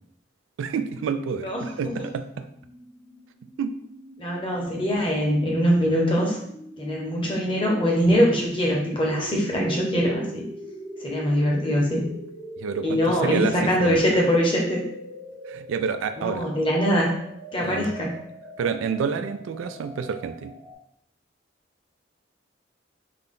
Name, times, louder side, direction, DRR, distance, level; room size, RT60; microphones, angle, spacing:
voice 1, 0.6-2.5 3.6-3.7 12.6-14.0 15.5-16.5 17.6-18.0 18.6-20.5, right 6 dB, 85° right, 10 dB, 0.3 m, -29 dB
voice 2, 1.4-1.9 4.2-6.4 6.8-10.4 11.0-12.1 12.8-14.8 16.2-17.1 17.5-18.1, equal, 25° left, -2 dB, 0.8 m, -23 dB
sound 1, 2.4-20.7, right 1 dB, 25° right, 0.6 m, -41 dB
3.8 x 2.2 x 3.6 m, 0.74 s
head